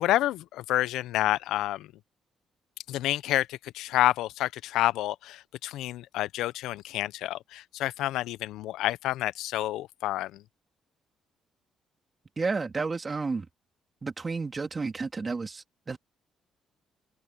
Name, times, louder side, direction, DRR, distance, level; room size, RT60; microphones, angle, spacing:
voice 1, 0.0-1.9 2.9-10.4, left 15 dB, 90° left, 0.5 m, -29 dB
voice 2, 12.4-13.5 14.0-16.0, right 4 dB, 30° right, 3.0 m, -31 dB
open air
cardioid pair, 90°, 0 cm